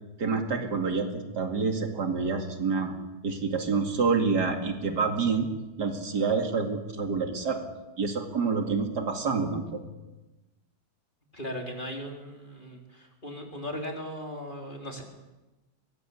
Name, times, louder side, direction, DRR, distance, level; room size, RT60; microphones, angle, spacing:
voice 1, 0.2-5.5 5.8-7.6 8.0-9.8, right 4 dB, 80° right, 5 dB, 3.0 m, -28 dB
voice 2, 11.3-15.0, equal, 30° left, 1 dB, 4.1 m, -38 dB
23.0 x 20.0 x 8.6 m, 1.1 s
omnidirectional pair, 1.7 m